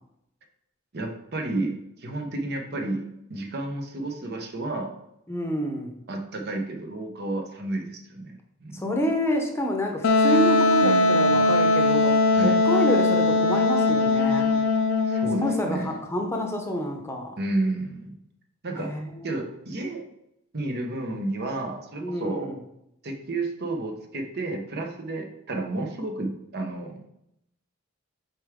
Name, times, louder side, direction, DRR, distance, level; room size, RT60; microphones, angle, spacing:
voice 1, 0.9-4.9 6.1-8.8 10.8-11.5 12.3-12.6 15.1-16.0 17.4-18.2 18.6-18.9 19.2-20.0 20.5-22.5 23.0-27.1, right 2 dB, 55° right, 3 dB, 0.9 m, -31 dB
voice 2, 5.3-5.9 8.7-14.6 15.4-17.3 18.8-19.3 22.0-22.5, equal, 15° left, 2 dB, 0.8 m, -28 dB
Wind instrument woodwind instrument, 10.0-15.6, left 2 dB, 70° left, 0.5 m, -20 dB
6.9 x 4.5 x 3.7 m, 0.80 s
head